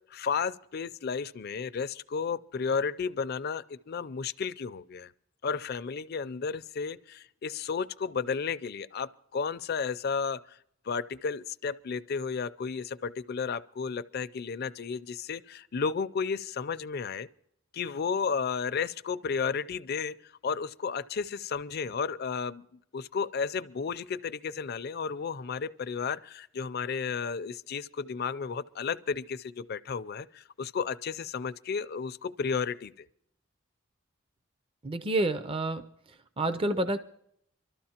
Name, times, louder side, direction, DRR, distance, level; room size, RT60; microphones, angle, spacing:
voice 1, 0.1-5.1 5.4-10.4 10.9-17.3 17.7-20.2 20.4-22.6 22.9-33.1, left 5 dB, 50° left, 0.5 m, -33 dB
voice 2, 34.8-35.9 36.4-37.0, right 2 dB, 25° right, 0.5 m, -28 dB
24.5 x 13.0 x 2.9 m
head